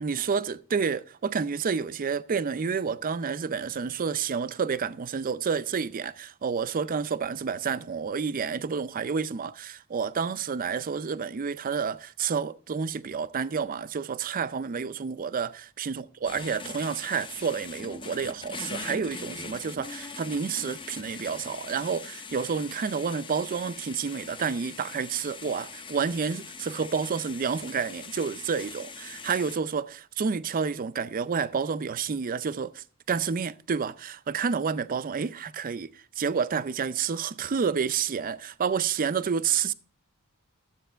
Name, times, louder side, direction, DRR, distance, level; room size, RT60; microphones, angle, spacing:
voice 1, 0.0-39.7, right 6 dB, 40° right, 0.4 m, -29 dB
sound 1, 16.2-29.6, left 5 dB, 25° left, 0.6 m, -42 dB
12.5 x 7.7 x 4.5 m
head